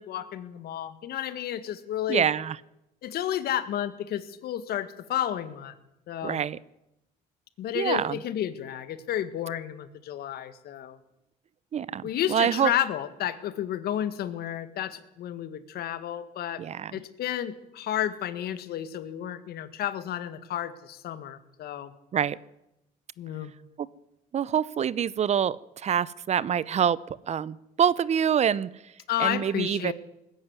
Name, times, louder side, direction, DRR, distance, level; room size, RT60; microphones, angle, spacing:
voice 1, 0.0-2.3 3.0-5.7 6.1-6.4 7.6-11.0 12.0-16.6 16.9-21.9 23.2-23.5 29.1-29.9, left 11 dB, 70° left, 13 dB, 1.7 m, -31 dB
voice 2, 2.1-2.6 6.2-6.6 7.7-8.1 11.7-12.0 12.3-12.7 16.6-16.9 22.1-22.4 24.3-25.6 25.8-27.0 27.3-28.7 29.2-29.9, right 8 dB, 40° right, 20 dB, 0.7 m, -25 dB
19.5 x 14.0 x 9.6 m, 0.88 s
cardioid pair, 110°, 17 cm